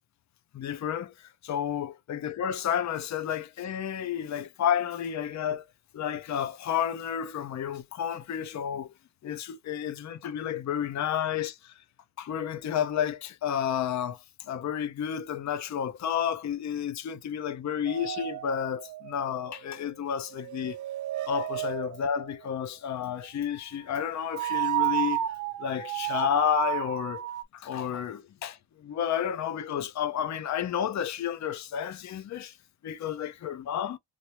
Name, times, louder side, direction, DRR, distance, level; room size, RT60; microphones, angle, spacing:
voice 1, 0.5-5.6 5.9-8.9 9.2-11.7 12.2-20.8 21.3-25.2 25.6-27.2 27.5-32.6 32.8-34.0, left 9 dB, 35° left, 0.5 m, -31 dB
sound 1, 17.9-19.8 20.3-22.3 24.2-27.4, right 14 dB, 40° right, 0.4 m, -32 dB
3.1 x 2.5 x 2.7 m
cardioid pair, 135°, 50 cm